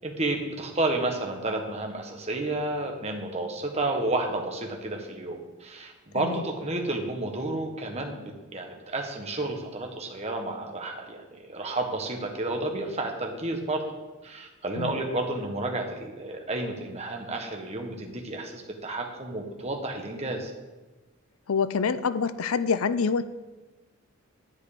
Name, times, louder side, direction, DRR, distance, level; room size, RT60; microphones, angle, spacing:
voice 1, 0.0-8.2 8.5-13.8 14.2-20.5, right 2 dB, 30° right, 2 dB, 1.4 m, -31 dB
voice 2, 21.5-23.3, left 5 dB, 75° left, 14 dB, 0.5 m, -26 dB
10.0 x 9.3 x 5.1 m, 1.2 s
head